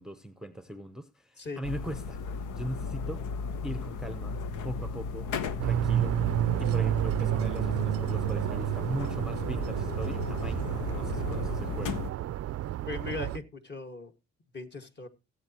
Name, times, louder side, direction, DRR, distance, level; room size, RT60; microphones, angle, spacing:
voice 1, 0.0-3.2 3.6-5.3 5.6-12.0, right 1 dB, ahead, 0.7 m, -40 dB
sound 1, 1.6-12.1, left 5 dB, 85° left, 1.0 m, -36 dB
sound 2, 5.6-13.4, right 12 dB, 55° right, 0.5 m, -30 dB
voice 2, 12.9-14.1 14.5-15.1, left 2 dB, 35° left, 1.8 m, -38 dB
17.5 x 8.1 x 2.9 m
cardioid pair, 90°, 30 cm